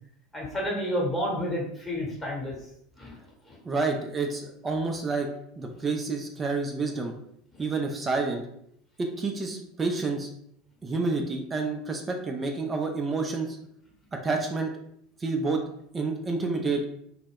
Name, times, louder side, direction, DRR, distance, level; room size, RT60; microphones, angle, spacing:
voice 1, 0.3-2.5 3.0-3.2 3.5-3.6, equal, 10° left, -3 dB, 1.0 m, -30 dB
voice 2, 3.6-5.3 5.6-7.1 7.6-8.5 9.0-10.3 10.8-13.6 14.1-14.7 15.2-15.6 15.9-16.9, right 3 dB, 20° right, 2 dB, 0.4 m, -29 dB
2.2 x 2.0 x 3.4 m, 0.73 s
figure-of-eight pair, 75°, 0 cm